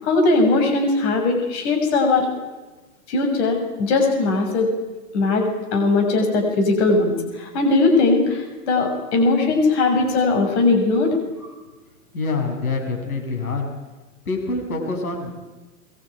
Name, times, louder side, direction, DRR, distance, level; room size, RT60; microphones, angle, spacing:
voice 1, 0.0-2.3 3.1-4.7 5.1-11.1, left 3 dB, 50° left, 4 dB, 6.8 m, -19 dB
voice 2, 12.1-13.7 14.3-15.3, left 3 dB, 75° left, 3 dB, 7.6 m, -26 dB
23.0 x 22.5 x 9.2 m, 1.2 s
hypercardioid pair, 115°, 44 cm